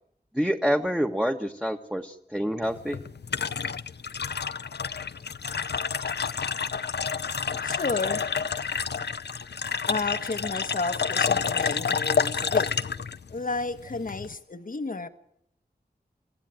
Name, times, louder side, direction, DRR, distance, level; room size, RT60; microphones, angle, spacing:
voice 1, 0.3-3.0, equal, 5° right, 1.5 m, -27 dB
sound 1, 2.6-14.4, left 6 dB, 80° left, 0.8 m, -29 dB
voice 2, 7.6-8.3 9.9-12.7 13.3-15.1, left 3 dB, 55° left, 1.4 m, -32 dB
24.5 x 15.0 x 9.2 m
wide cardioid pair, 55°, 17 cm